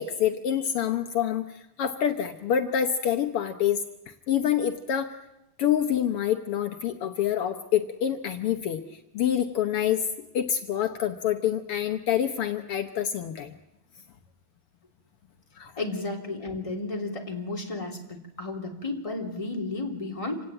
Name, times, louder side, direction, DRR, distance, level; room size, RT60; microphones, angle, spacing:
voice 1, 0.0-5.1 5.6-10.1 10.3-13.6 15.5-15.7, left 9 dB, 80° left, 7 dB, 1.2 m, -27 dB
voice 2, 15.8-20.4, left 2 dB, 10° left, 1 dB, 2.8 m, -33 dB
26.5 x 18.0 x 9.1 m, 0.92 s
omnidirectional pair, 4.0 m